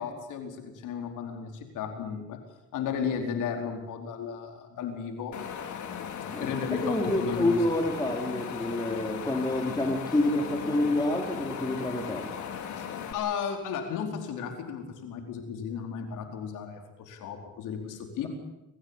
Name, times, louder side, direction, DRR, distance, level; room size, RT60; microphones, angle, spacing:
voice 1, 0.0-2.4 2.7-5.4 6.4-7.6 12.8-12.9 13.1-18.3, left 7 dB, 90° left, 4 dB, 4.6 m, -34 dB
Wind, 5.3-13.1, left 7 dB, 75° left, 3.4 m, -37 dB
voice 2, 6.3-12.3, left 1 dB, 15° left, 1 dB, 4.0 m, -28 dB
25.5 x 15.5 x 9.9 m, 0.93 s
cardioid pair, 90°, 30 cm